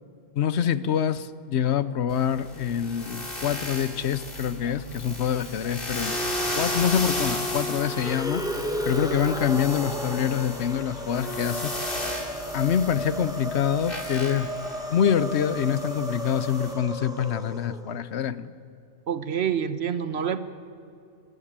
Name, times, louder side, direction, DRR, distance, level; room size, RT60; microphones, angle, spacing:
voice 1, 0.4-6.2 6.6-11.7 12.5-14.5 14.9-18.5, left 9 dB, 75° left, 16 dB, 1.0 m, -26 dB
sound 1, 2.1-16.7, left 1 dB, 55° left, 2.8 m, -34 dB
sound 2, 7.8-18.0, equal, 5° right, 1.4 m, -34 dB
voice 2, 19.1-20.4, right 8 dB, 70° right, 12 dB, 1.2 m, -27 dB
22.5 x 13.5 x 8.8 m, 2.5 s
omnidirectional pair, 1.1 m